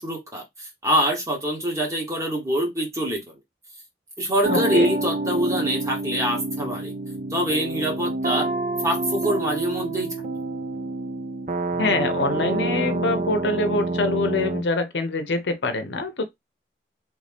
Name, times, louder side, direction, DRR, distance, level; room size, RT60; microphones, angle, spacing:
voice 1, 0.0-3.2 4.2-6.9 7.3-8.5 8.8-10.1, equal, 15° right, 1.1 m, -25 dB
sound 1, 4.4-14.6, right 2 dB, 40° right, 0.5 m, -27 dB
voice 2, 4.5-4.9 11.8-16.2, left 2 dB, 75° left, 0.7 m, -25 dB
3.2 x 2.6 x 3.3 m
head